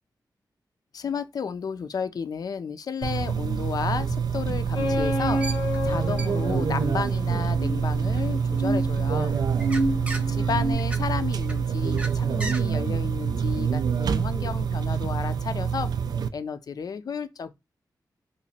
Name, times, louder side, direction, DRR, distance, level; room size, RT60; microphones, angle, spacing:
voice 1, 0.9-5.4 5.8-9.4 10.3-15.9 16.3-17.5, left 6 dB, 60° left, 0.4 m, -32 dB
sound 1, 3.0-16.3, right 7 dB, 65° right, 0.3 m, -26 dB
sound 2, 4.7-10.7, equal, 90° left, 0.8 m, -29 dB
sound 3, 5.4-8.5 9.0-12.6, right 2 dB, 15° right, 0.6 m, -39 dB
2.9 x 2.5 x 4.1 m
wide cardioid pair, 115°, 7 cm